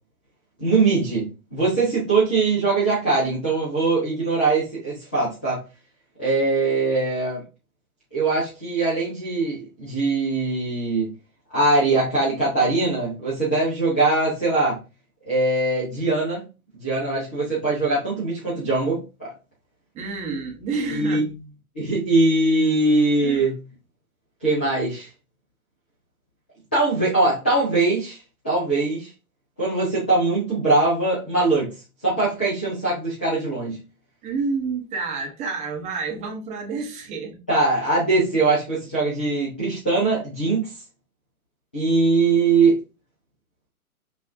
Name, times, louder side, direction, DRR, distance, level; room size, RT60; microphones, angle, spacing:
voice 1, 0.6-5.6 6.2-7.4 8.1-11.1 11.5-14.8 15.3-16.5 16.7-19.3 20.8-21.2 21.7-23.6 24.4-25.1 26.7-28.2 28.4-29.1 29.6-31.8 32.0-33.8 37.5-40.7 41.7-42.8, right 3 dB, 10° left, 0.3 m, -21 dB
voice 2, 19.9-21.2 23.2-23.5 34.2-37.4, right 4 dB, 15° right, 0.8 m, -29 dB
5.9 x 2.3 x 2.5 m
figure-of-eight pair, 110°, 44 cm